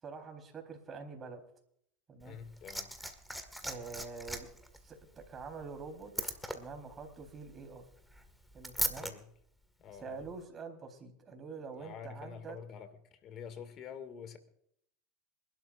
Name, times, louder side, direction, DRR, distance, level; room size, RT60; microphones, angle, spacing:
voice 1, 0.0-1.4 2.1-2.4 3.6-4.5 4.8-7.8 8.5-9.1 9.9-12.6, right 4 dB, 25° right, 4.0 m, -46 dB
voice 2, 2.2-2.9 9.0-9.2 9.8-10.2 11.8-12.9 13.2-14.4, left 7 dB, 40° left, 2.2 m, -47 dB
Liquid, 2.2-9.1 10.2-10.3, equal, ahead, 1.9 m, -40 dB
27.0 x 12.0 x 2.6 m
hypercardioid pair, 105°, 0 cm